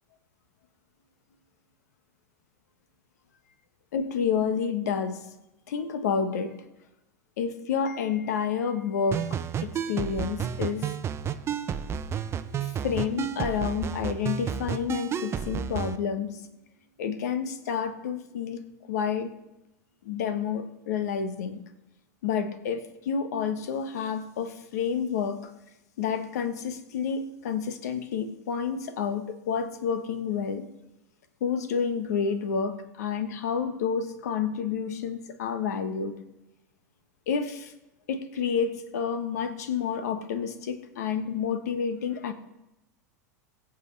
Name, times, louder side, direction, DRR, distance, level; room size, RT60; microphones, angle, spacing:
voice 1, 3.9-5.3 5.7-6.6 7.4-11.0 12.6-16.4 17.0-19.3 20.0-21.6 22.2-25.5 26.0-30.6 31.4-36.2 37.3-37.7 38.1-42.3, left 6 dB, 70° left, 9 dB, 1.3 m, -29 dB
sound 1, 9.1-16.0, right 8 dB, 30° right, 0.7 m, -31 dB
22.0 x 7.4 x 3.4 m, 0.95 s
hypercardioid pair, 95°, 9 cm